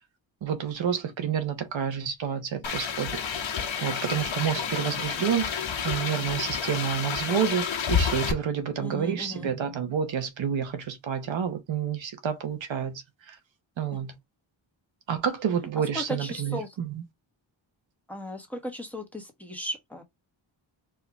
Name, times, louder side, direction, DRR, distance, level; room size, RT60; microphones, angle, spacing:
voice 1, 0.4-3.2 3.8-13.4 13.8-14.2 15.1-16.9, right 8 dB, 70° right, 1.1 m, -29 dB
sound 1, 2.6-8.3, left 7 dB, 70° left, 1.2 m, -30 dB
voice 2, 8.8-9.5 15.9-16.8 18.1-20.0, equal, 5° left, 1.3 m, -36 dB
4.7 x 2.7 x 3.5 m
wide cardioid pair, 115°, 48 cm